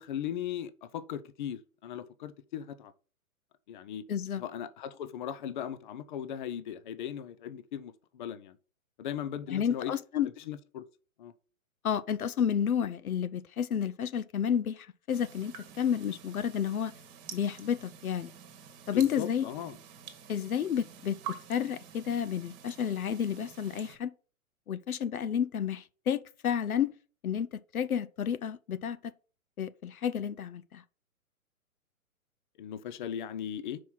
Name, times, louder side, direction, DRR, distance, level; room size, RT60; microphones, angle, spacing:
voice 1, 0.0-2.9 3.7-4.0 4.3-8.6 9.0-9.9 10.4-10.8 11.2-11.3 18.9-19.8 32.6-33.8, left 9 dB, 35° left, 0.5 m, -38 dB
voice 2, 4.1-4.4 9.5-10.3 11.8-16.9 17.3-18.3 18.9-19.5 20.3-24.1 24.7-27.0 27.2-29.0 29.6-30.8, left 8 dB, 80° left, 0.7 m, -31 dB
sound 1, 15.1-24.0, right 8 dB, 30° right, 1.3 m, -48 dB
5.5 x 4.8 x 5.6 m
hypercardioid pair, 130°, 42 cm